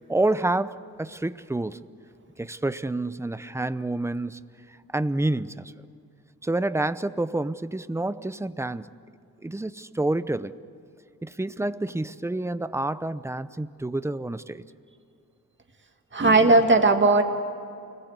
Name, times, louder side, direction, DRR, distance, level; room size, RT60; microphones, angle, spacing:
voice 1, 0.1-1.8 2.4-4.4 4.9-5.7 6.4-8.9 9.4-10.5 11.2-14.6, right 2 dB, 10° right, 13 dB, 0.7 m, -28 dB
voice 2, 16.1-17.2, right 3 dB, 30° right, 4 dB, 2.2 m, -17 dB
29.0 x 21.0 x 8.2 m, 2.6 s
wide cardioid pair, 110°, 35 cm